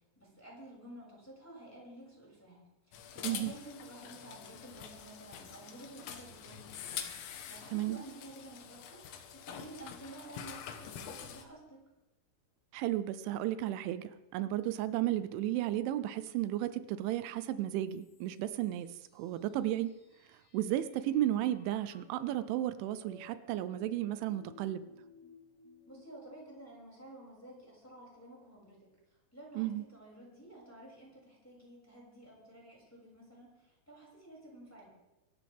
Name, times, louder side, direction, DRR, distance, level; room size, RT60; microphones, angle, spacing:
voice 1, 0.2-11.8 25.9-28.9 29.3-34.9, right 1 dB, 5° left, -5 dB, 6.1 m, -52 dB
sound 1, 2.9-11.4, left 8 dB, 80° left, 3.6 m, -46 dB
voice 2, 7.7-8.0 12.7-19.9 20.5-24.8 29.6-29.8, right 13 dB, 90° right, 13 dB, 3.1 m, -34 dB
sound 2, 17.9-26.0, left 4 dB, 60° left, 3.8 m, -60 dB
24.5 x 13.5 x 3.6 m, 0.97 s
omnidirectional pair, 5.3 m